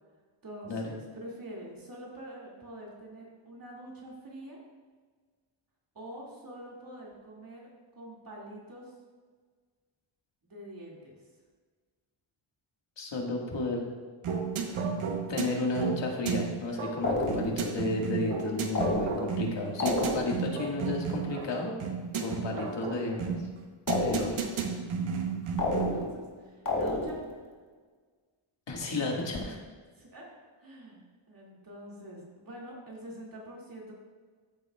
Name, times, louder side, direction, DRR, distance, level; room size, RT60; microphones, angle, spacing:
voice 1, 0.4-4.6 5.9-7.7 8.0-8.9 10.4-11.2 22.3-22.7 23.0-23.4 25.7-27.4 30.0-30.3 30.6-33.9, right 1 dB, 45° right, -4 dB, 2.4 m, -45 dB
voice 2, 13.0-13.9 15.3-21.7 22.2-23.4 24.0-24.4 28.7-29.6, left 2 dB, 60° left, -1 dB, 1.9 m, -32 dB
sound 1, 14.2-26.1, right 6 dB, 85° right, 1.1 m, -33 dB
sound 2, 17.0-17.7 18.7-19.5 19.8-20.5 23.9-24.6 25.6-26.3 26.7-27.4, left 2 dB, 40° left, 1.8 m, -31 dB
14.0 x 7.1 x 2.4 m, 1.5 s
cardioid pair, 100°, 49 cm